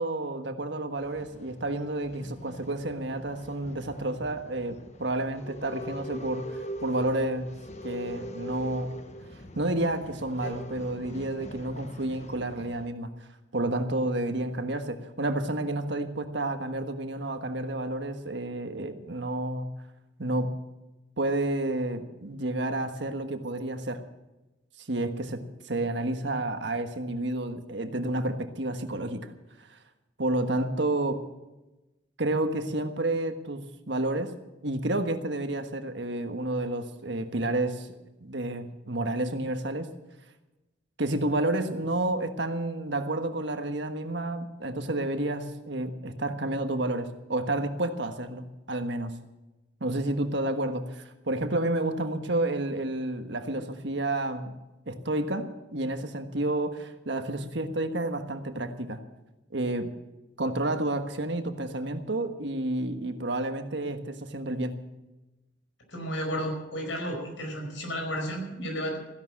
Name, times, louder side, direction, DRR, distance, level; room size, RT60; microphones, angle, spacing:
voice 1, 0.0-7.5 7.8-8.9 9.5-13.1 13.5-19.7 20.2-20.5 21.2-24.0 24.9-29.3 30.2-31.2 32.2-34.3 34.6-37.9 38.2-39.9 41.0-49.2 49.8-54.5 54.9-59.0 59.5-59.9 60.4-64.8, right 1 dB, 65° right, 7 dB, 1.4 m, -30 dB
Male speech man speaking / Chatter / Rattle, 1.0-12.9, equal, 35° left, 1.0 m, -42 dB
voice 2, 65.9-69.0, equal, 80° left, 2 dB, 5.2 m, -32 dB
15.5 x 11.5 x 7.5 m, 1.0 s
head